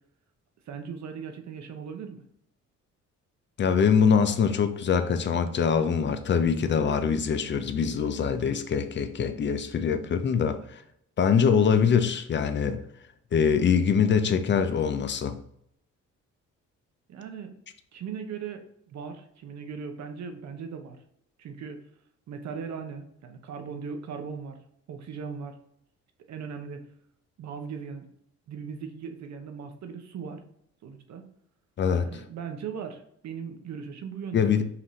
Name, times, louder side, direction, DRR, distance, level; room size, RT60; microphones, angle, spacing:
voice 1, 0.7-2.3 17.1-17.6 17.9-21.0 21.4-21.8 22.3-24.6 24.9-25.5 26.3-26.8 27.4-28.1 28.5-30.4 30.8-31.3 32.0-34.5, right 6 dB, 65° right, 0.8 m, -38 dB
voice 2, 3.6-10.6 11.2-12.8 13.3-15.4 31.8-32.2 34.3-34.6, left 6 dB, 40° left, 0.6 m, -23 dB
5.7 x 2.7 x 3.1 m
cardioid pair, 90°, 30 cm